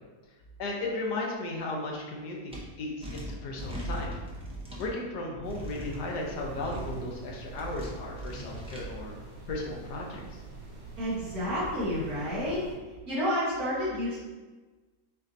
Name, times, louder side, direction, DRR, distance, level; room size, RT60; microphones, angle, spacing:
voice 1, 0.6-4.2 4.8-9.1 9.5-10.4, left 2 dB, 75° left, -1 dB, 1.4 m, -35 dB
sound 1, 2.5-2.6 3.0-4.9 5.4-6.0 6.5-7.0 7.5-8.9, right 1 dB, 10° right, 0.3 m, -39 dB
sound 2, 5.4-12.8, right 3 dB, 80° right, 2.2 m, -45 dB
voice 2, 11.0-12.7 13.1-14.2, equal, 60° right, -9 dB, 1.7 m, -30 dB
7.4 x 2.7 x 2.7 m, 1.2 s
omnidirectional pair, 1.8 m